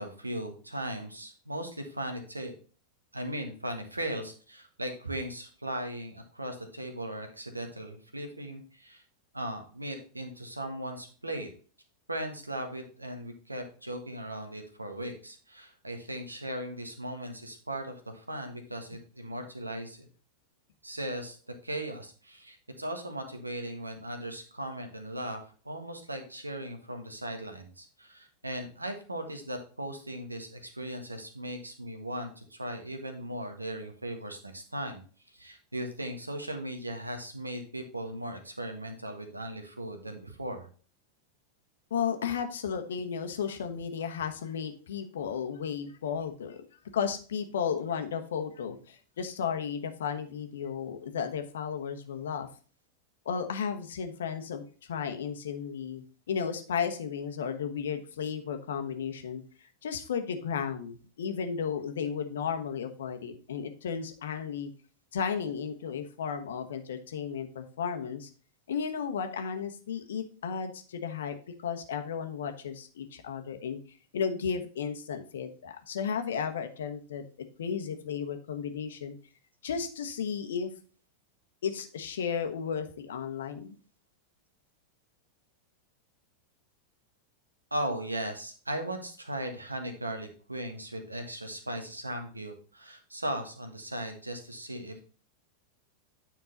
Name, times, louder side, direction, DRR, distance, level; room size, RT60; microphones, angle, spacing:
voice 1, 0.0-2.5 3.1-9.0 9.3-11.5 12.1-20.1 20.8-21.4 21.6-35.0 35.3-40.7 87.7-95.0, right 1 dB, 85° right, 6 dB, 1.4 m, -38 dB
voice 2, 41.9-46.6 46.9-52.5 53.2-59.4 59.8-64.7 65.1-68.3 68.7-71.3 71.6-73.8 74.1-77.2 77.6-79.1 79.6-80.7 81.6-83.7, left 7 dB, 65° left, 6 dB, 1.1 m, -34 dB
9.4 x 4.5 x 4.0 m, 0.40 s
figure-of-eight pair, 90°, 0 cm